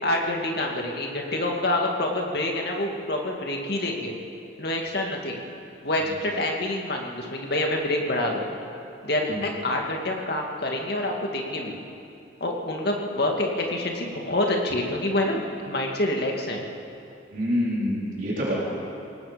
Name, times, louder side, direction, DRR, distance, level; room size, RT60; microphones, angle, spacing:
voice 1, 0.0-4.2 4.6-5.4 5.8-8.4 9.0-11.8 12.4-16.6, left 1 dB, 55° left, 0 dB, 2.5 m, -27 dB
voice 2, 17.3-18.5, equal, 45° right, -8 dB, 4.2 m, -26 dB
28.0 x 18.5 x 5.3 m, 2.7 s
head